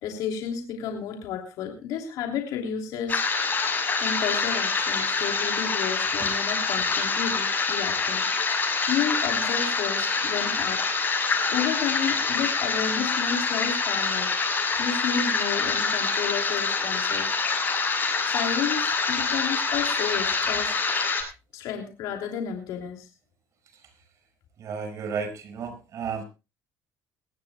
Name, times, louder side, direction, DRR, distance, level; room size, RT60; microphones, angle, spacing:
voice 1, 0.0-3.2 4.0-8.2 8.9-10.8 11.5-14.3 14.8-17.3 18.2-20.7 21.5-23.1, left 7 dB, 75° left, 2 dB, 3.1 m, -31 dB
sound 1, 3.1-21.2, left 4 dB, 30° left, 7.5 m, -26 dB
voice 2, 24.6-26.2, right 6 dB, 55° right, 9 dB, 5.4 m, -33 dB
21.5 x 16.5 x 2.2 m, 0.29 s
cardioid pair, 105°, 6 cm